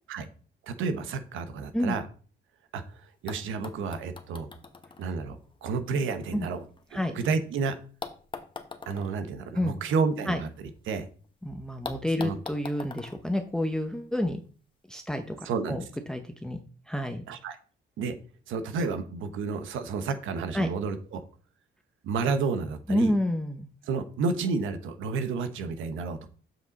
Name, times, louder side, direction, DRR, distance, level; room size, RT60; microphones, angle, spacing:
voice 1, 0.7-2.0 2.7-4.5 5.0-6.6 6.9-7.8 8.9-10.5 10.9-11.1 12.2-12.4 15.4-15.8 17.3-17.6 18.0-18.2 18.5-21.2 22.0-23.1 23.9-26.3, right 4 dB, 85° right, 9 dB, 1.0 m, -30 dB
sound 1, 3.3-7.4 8.0-11.0 11.2-11.3 11.8-14.2 15.2-15.3, left 4 dB, 25° left, 1.1 m, -44 dB
voice 2, 11.4-14.4 14.9-15.4 15.7-16.6 16.9-17.2 20.5-20.7 22.9-23.7, left 1 dB, 5° left, 5 dB, 0.8 m, -29 dB
7.5 x 5.9 x 4.0 m, 0.40 s
cardioid pair, 90°, 20 cm